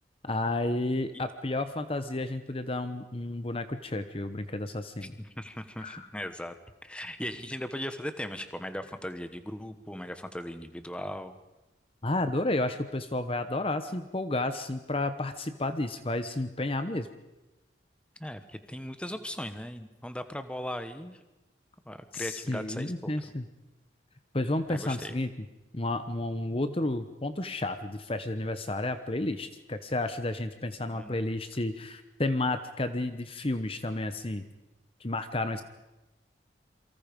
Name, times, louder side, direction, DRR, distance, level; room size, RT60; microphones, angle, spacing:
voice 1, 0.2-5.1 5.8-6.1 12.0-17.1 22.1-23.5 24.3-25.3 25.7-34.4 35.0-35.6, left 2 dB, 30° left, 10 dB, 1.0 m, -31 dB
voice 2, 5.0-6.5 6.8-11.4 18.2-21.2 21.9-23.1 24.7-25.1 30.9-31.2, equal, 5° left, 9 dB, 1.3 m, -38 dB
28.0 x 23.5 x 5.3 m, 1.0 s
head